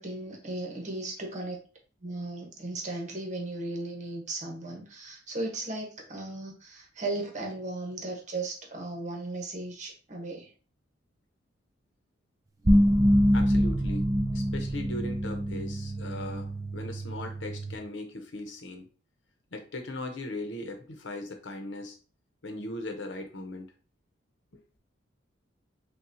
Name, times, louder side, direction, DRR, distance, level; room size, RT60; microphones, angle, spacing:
voice 1, 0.0-1.6 2.0-10.5, right 2 dB, 40° right, 1 dB, 1.0 m, -36 dB
sound 1, 12.6-17.8, equal, 20° right, 0.5 m, -25 dB
voice 2, 13.3-18.9 19.5-22.0 22.4-23.7 24.5-24.6, left 2 dB, 90° left, 5 dB, 0.8 m, -39 dB
5.6 x 2.4 x 2.7 m, 0.38 s
head